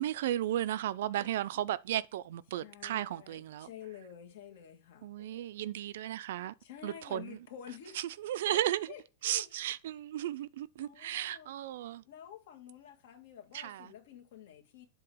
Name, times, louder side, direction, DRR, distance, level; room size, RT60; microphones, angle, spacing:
voice 1, 0.0-3.7 5.0-6.5 6.8-7.4 8.2-8.9 9.2-12.0 13.5-13.9, right 12 dB, 70° right, 0.4 m, -34 dB
voice 2, 1.2-1.6 2.6-5.5 6.6-8.0 8.5-8.6 8.9-9.5 10.8-11.5 12.0-14.9, left 9 dB, 65° left, 1.9 m, -50 dB
7.8 x 2.9 x 6.1 m
supercardioid pair, 165°, 0 cm